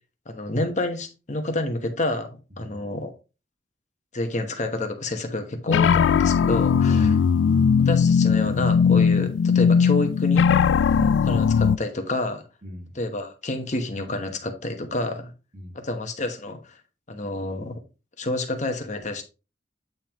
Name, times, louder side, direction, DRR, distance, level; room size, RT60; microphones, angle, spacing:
voice 1, 0.3-3.1 4.1-7.1 7.8-10.5 11.2-12.5 12.9-15.3 15.7-16.8 17.1-17.7 18.2-19.2, left 2 dB, 40° left, 1.1 m, -29 dB
ominous tone, 5.7-11.8, left 6 dB, 85° left, 0.3 m, -19 dB
voice 2, 10.9-11.3 12.6-13.0 15.5-15.8, equal, 45° right, 2.0 m, -37 dB
8.7 x 5.6 x 3.0 m
head